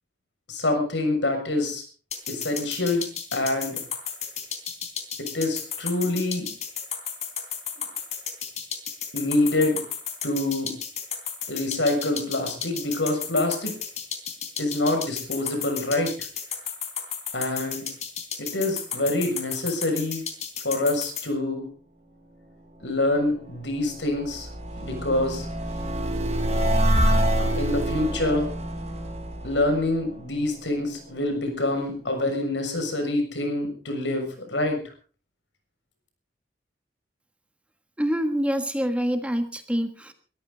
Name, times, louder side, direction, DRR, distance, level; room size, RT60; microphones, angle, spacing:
voice 1, 0.5-1.9 2.3-3.8 5.2-6.5 9.1-9.8 10.2-10.7 11.5-13.7 14.6-16.1 17.3-17.9 18.4-20.2 20.6-21.7 22.8-24.5 24.8-25.5 27.6-28.5 29.4-34.8, left 2 dB, 80° left, 5 dB, 6.8 m, -26 dB
sound 1, 2.1-21.3, left 8 dB, 40° left, 3.5 m, -32 dB
sound 2, 23.4-30.6, equal, 35° right, 5.2 m, -26 dB
voice 2, 38.0-40.1, equal, 5° right, 7 dB, 1.4 m, -26 dB
22.5 x 14.0 x 4.0 m, 0.38 s
head